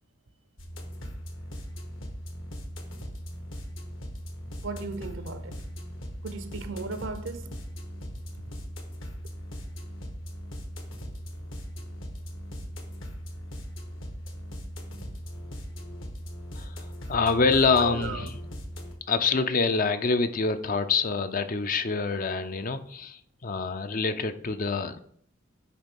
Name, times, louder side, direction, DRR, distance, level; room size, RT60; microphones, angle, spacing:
sound 1, 0.6-18.9, equal, 70° left, 1.6 m, -39 dB
voice 1, 4.6-5.6 6.2-7.5 17.7-18.3, right 3 dB, 65° right, 0.7 m, -36 dB
voice 2, 16.5-18.4 19.1-25.0, left 4 dB, 40° left, 0.6 m, -26 dB
9.5 x 3.2 x 5.3 m
head